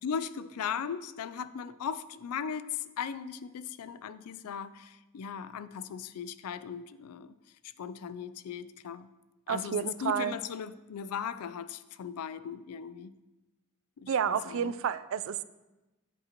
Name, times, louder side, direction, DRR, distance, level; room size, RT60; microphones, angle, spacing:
voice 1, 0.0-7.4 7.8-9.1 9.5-13.1 14.0-14.7, left 7 dB, 90° left, 14 dB, 0.4 m, -38 dB
voice 2, 9.5-10.4 14.1-15.4, right 7 dB, 65° right, 14 dB, 0.3 m, -30 dB
7.7 x 7.7 x 2.9 m, 1.1 s
head